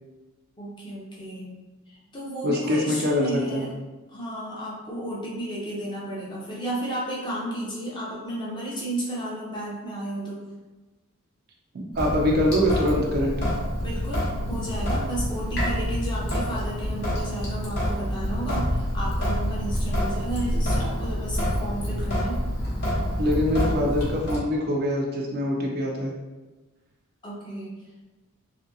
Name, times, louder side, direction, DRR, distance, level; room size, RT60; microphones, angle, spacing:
voice 1, 0.6-1.5 1.9-3.7 4.1-10.5 13.8-22.4 27.2-27.8, right 1 dB, 20° left, -6 dB, 0.6 m, -33 dB
voice 2, 2.4-3.7 11.7-13.4 23.2-26.1, left 1 dB, 45° right, 0 dB, 0.4 m, -24 dB
Sink (filling or washing) / Drip, 11.9-24.4, equal, 50° left, 0.9 m, -27 dB
2.7 x 2.6 x 2.6 m, 1.2 s
head